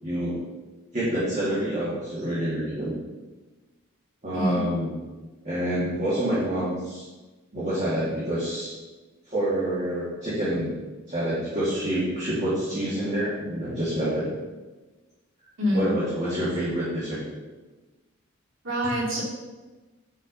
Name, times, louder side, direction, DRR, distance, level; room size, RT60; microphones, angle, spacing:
voice 1, 0.0-0.4 0.9-2.9 4.2-5.0 5.4-7.0 7.5-8.7 9.3-10.7 11.1-14.3 15.7-17.2, right 1 dB, 40° right, -10 dB, 2.9 m, -27 dB
voice 2, 4.3-4.7 15.6-15.9 18.6-19.2, equal, 80° right, -6 dB, 3.4 m, -26 dB
9.7 x 5.6 x 5.5 m, 1.2 s
head